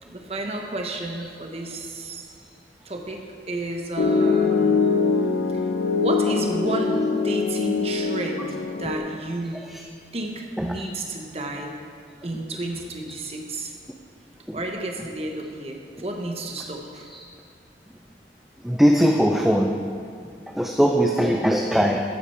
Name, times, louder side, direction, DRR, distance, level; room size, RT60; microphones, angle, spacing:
voice 1, 0.0-2.3 2.8-3.2 3.5-4.9 6.0-8.5 8.8-9.6 10.1-11.7 12.2-13.7 14.5-17.1, right 1 dB, 35° right, 2 dB, 1.2 m, -31 dB
Piano, 4.0-9.0, left 4 dB, 70° left, 0.8 m, -23 dB
voice 2, 18.6-19.7 20.6-22.0, equal, ahead, 1 dB, 0.5 m, -19 dB
13.5 x 8.7 x 4.4 m, 2.2 s
head